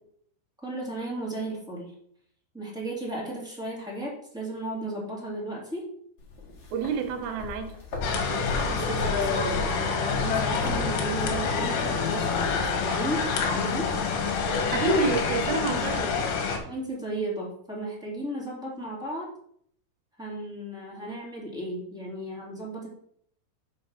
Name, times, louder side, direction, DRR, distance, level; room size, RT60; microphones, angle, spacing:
voice 1, 0.6-1.9 2.5-5.8 8.7-13.9 16.7-19.3 20.2-22.9, right 1 dB, ahead, -5 dB, 2.5 m, -35 dB
sound 1, 6.2-16.1, left 3 dB, 45° left, 1.6 m, -39 dB
voice 2, 6.7-7.7 14.7-16.1, right 4 dB, 75° right, 5 dB, 3.3 m, -28 dB
sound 2, 8.0-16.6, left 5 dB, 75° left, 3.5 m, -27 dB
6.3 x 5.8 x 6.7 m, 0.66 s
omnidirectional pair, 4.9 m